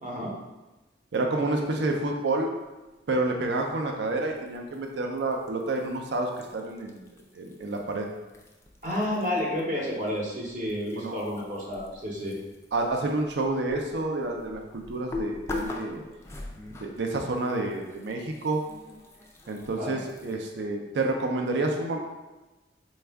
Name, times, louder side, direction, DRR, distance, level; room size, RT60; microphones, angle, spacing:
voice 1, 0.0-0.3 8.8-12.4 19.7-20.0, left 1 dB, 45° right, -4 dB, 0.7 m, -30 dB
voice 2, 1.1-2.5 3.1-7.0 7.3-8.1 11.0-11.2 12.7-16.0 16.8-18.6 19.5-22.0, right 2 dB, 75° right, 2 dB, 0.5 m, -29 dB
sound 1, 4.3-9.6 9.9-20.4, left 2 dB, 15° left, 0.3 m, -42 dB
4.2 x 2.3 x 3.4 m, 1.1 s
head